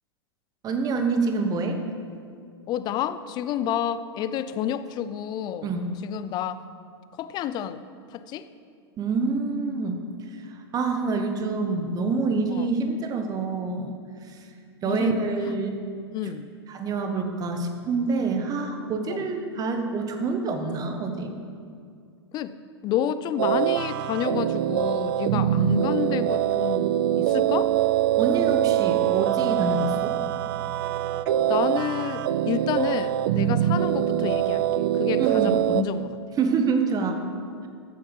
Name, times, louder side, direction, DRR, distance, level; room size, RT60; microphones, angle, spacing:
voice 1, 0.6-1.8 5.6-5.9 9.0-10.0 10.7-14.0 14.8-15.8 16.7-21.3 25.3-25.4 28.2-30.2 33.5-33.7 35.2-35.5 36.4-37.2, right 4 dB, 25° right, 5 dB, 1.2 m, -26 dB
voice 2, 2.7-5.7 6.0-6.6 7.1-7.8 8.1-8.5 12.5-12.7 14.8-15.2 15.4-15.5 16.1-16.5 19.1-19.2 22.3-22.5 22.8-27.7 31.5-36.2, left 9 dB, 30° left, 13 dB, 0.5 m, -30 dB
sound 1, 23.4-35.8, right 11 dB, 55° right, 0.4 m, -24 dB
14.0 x 7.7 x 4.0 m, 2.2 s
figure-of-eight pair, 100°, 14 cm